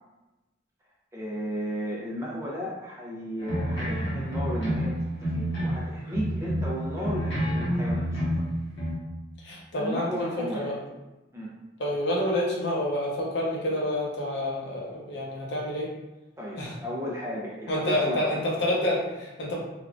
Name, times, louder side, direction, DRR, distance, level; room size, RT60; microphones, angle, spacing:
voice 1, 1.1-8.3 9.7-10.7 11.3-11.5 16.4-18.3, equal, 15° right, -5 dB, 0.5 m, -34 dB
sound 1, 3.4-5.8 6.1-8.9, equal, 75° left, 1.1 m, -28 dB
voice 2, 9.4-10.8 11.8-15.9 16.6-16.7 17.7-19.5, left 1 dB, 60° left, -3 dB, 0.7 m, -28 dB
3.5 x 2.3 x 2.4 m, 1.0 s
head